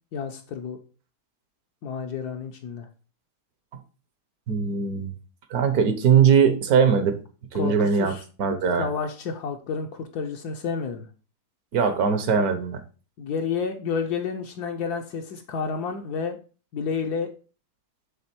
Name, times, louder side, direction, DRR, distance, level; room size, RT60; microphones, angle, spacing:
voice 1, 0.1-0.8 1.8-2.9 7.5-8.2 8.8-11.1 13.2-16.4 16.7-17.3, left 5 dB, 75° left, 3 dB, 1.3 m, -30 dB
voice 2, 4.5-5.1 5.5-7.2 7.5-8.1 8.4-8.9 11.7-12.8, right 6 dB, 65° right, 8 dB, 1.3 m, -20 dB
7.6 x 3.5 x 4.4 m, 0.36 s
omnidirectional pair, 1.7 m